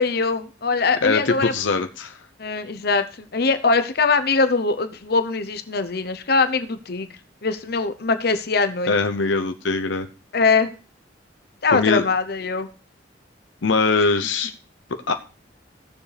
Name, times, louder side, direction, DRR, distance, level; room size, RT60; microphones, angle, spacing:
voice 1, 0.0-1.5 2.4-7.1 7.4-8.9 10.3-10.7 11.6-12.7, left 4 dB, 55° left, 10 dB, 0.8 m, -22 dB
voice 2, 1.0-2.2 8.9-10.1 11.7-12.0 13.6-14.5 15.1-15.2, left 4 dB, 90° left, 7 dB, 0.8 m, -21 dB
17.5 x 7.2 x 3.4 m, 0.34 s
head